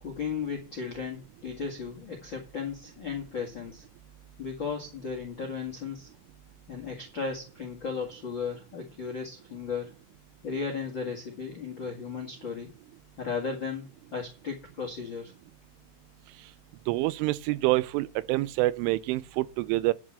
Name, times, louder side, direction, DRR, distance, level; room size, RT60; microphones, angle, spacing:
voice 1, 0.0-3.8 4.4-6.1 6.7-9.9 10.4-12.7 13.2-15.3, left 5 dB, 60° left, 1.2 m, -35 dB
voice 2, 16.9-19.9, right 19 dB, 90° right, 3.2 m, -27 dB
11.0 x 5.3 x 7.4 m
omnidirectional pair, 5.5 m